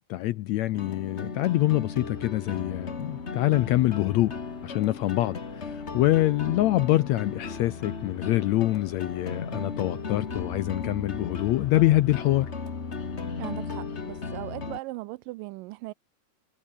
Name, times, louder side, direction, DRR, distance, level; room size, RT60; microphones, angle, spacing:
voice 1, 0.0-4.3 4.6-12.5, left 16 dB, 80° left, 1.6 m, -25 dB
sound 1, 0.7-14.8, left 4 dB, 30° left, 1.4 m, -36 dB
sound 2, 2.1-14.2, left 7 dB, 45° left, 1.5 m, -51 dB
voice 2, 13.4-15.9, right 21 dB, 85° right, 2.2 m, -38 dB
omnidirectional pair, 3.8 m